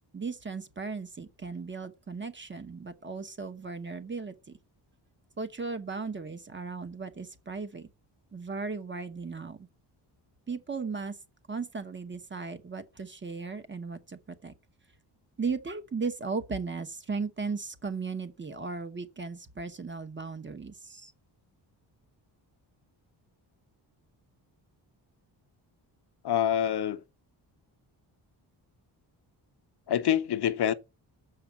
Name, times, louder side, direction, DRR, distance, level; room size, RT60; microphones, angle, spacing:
voice 1, 0.1-4.6 5.4-7.9 8.3-9.7 10.5-11.2 11.5-14.5 15.4-21.1, right 4 dB, 25° right, 0.9 m, -36 dB
voice 2, 26.2-27.0 29.9-30.7, left 10 dB, 60° left, 0.8 m, -26 dB
7.0 x 4.9 x 7.1 m
wide cardioid pair, 155°, 44 cm